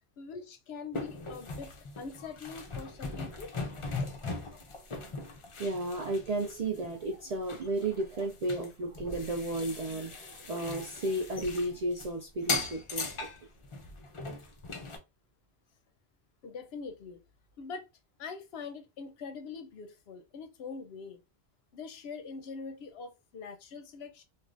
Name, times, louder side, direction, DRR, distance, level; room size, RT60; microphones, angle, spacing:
voice 1, 0.2-3.5 4.0-4.2 16.4-17.2 17.6-17.8 18.2-21.2 21.7-24.2, left 5 dB, 65° left, 0.8 m, -43 dB
sound 1, 0.9-7.1 7.5-12.1 12.4-15.0, left 3 dB, 45° left, 0.4 m, -39 dB
voice 2, 5.6-13.3, right 2 dB, 60° right, 0.4 m, -33 dB
3.2 x 2.4 x 2.4 m
omnidirectional pair, 1.2 m